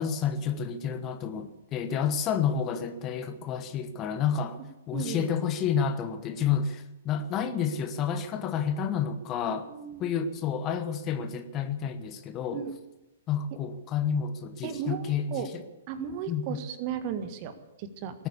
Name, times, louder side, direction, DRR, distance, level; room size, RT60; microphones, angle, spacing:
voice 1, 0.0-4.6 4.9-9.7 10.0-12.6 13.3-15.5 16.3-16.6, left 7 dB, 25° left, 9 dB, 1.2 m, -30 dB
voice 2, 4.9-5.3 9.7-10.0 12.5-12.7 14.6-15.5 15.9-18.2, right 7 dB, 35° right, 9 dB, 1.7 m, -35 dB
19.5 x 9.0 x 8.4 m, 0.99 s
figure-of-eight pair, 115°, 0 cm